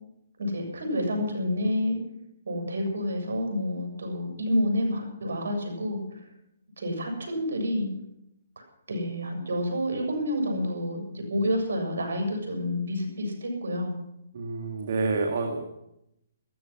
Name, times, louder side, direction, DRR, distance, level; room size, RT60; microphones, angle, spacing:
voice 1, 0.4-2.0 2.5-6.0 6.8-7.9 8.9-14.0, left 1 dB, 75° right, 2 dB, 7.0 m, -29 dB
voice 2, 14.3-15.6, right 3 dB, 60° right, 2 dB, 2.2 m, -28 dB
15.0 x 14.5 x 6.1 m, 0.82 s
hypercardioid pair, 150°, 0 cm